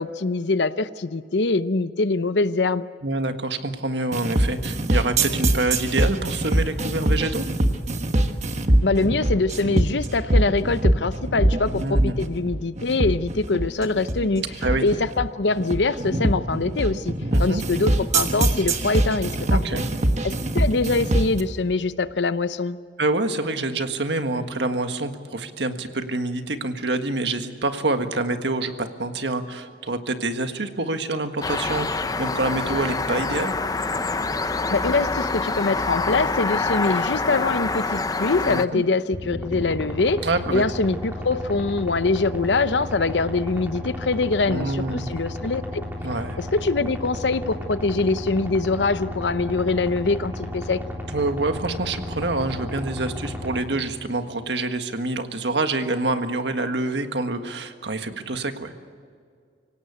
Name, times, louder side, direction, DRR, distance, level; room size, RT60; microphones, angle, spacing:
voice 1, 0.0-2.9 8.8-14.4 14.8-17.1 17.4-19.8 20.2-22.8 34.7-45.8 46.4-50.8, left 3 dB, 75° left, 14 dB, 0.8 m, -23 dB
voice 2, 3.0-7.5 11.8-12.2 14.6-14.8 17.3-17.6 19.5-19.9 23.0-33.5 38.4-38.8 40.2-40.6 44.5-45.1 46.0-46.4 51.1-58.7, right 2 dB, 75° right, 7 dB, 1.6 m, -26 dB
sound 1, 4.1-21.4, right 1 dB, 40° right, 1.3 m, -23 dB
sound 2, 31.4-38.6, left 3 dB, 20° left, 0.6 m, -26 dB
sound 3, 39.1-53.6, left 1 dB, 10° right, 3.7 m, -33 dB
25.5 x 17.0 x 8.4 m, 2.1 s
head